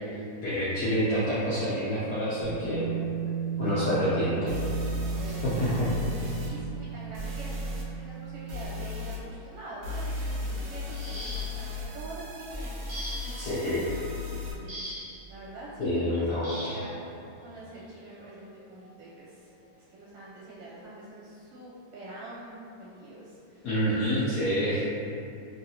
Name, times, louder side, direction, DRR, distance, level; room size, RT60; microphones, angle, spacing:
voice 1, 0.1-2.9 3.6-4.5 5.4-5.9 13.4-13.8 15.8-16.7 23.6-24.8, equal, 75° left, -10 dB, 0.8 m, -28 dB
Bass guitar, 2.4-8.7, right 9 dB, 30° right, 1.2 m, -35 dB
voice 2, 3.8-13.5 13.8-13.9 14.2-16.2 16.6-17.1 17.4-23.7, right 1 dB, 70° right, -8 dB, 1.2 m, -45 dB
sound 1, 4.5-6.5 7.1-7.8 8.5-9.2 9.8-14.5, left 3 dB, 90° right, 0.8 m, -35 dB
sound 2, 10.9-11.8 12.9-13.5 14.7-15.3 16.4-16.9 18.1-18.2 18.8-19.0, equal, 50° right, 1.1 m, -40 dB
3.1 x 2.7 x 2.7 m, 2.7 s
omnidirectional pair, 2.2 m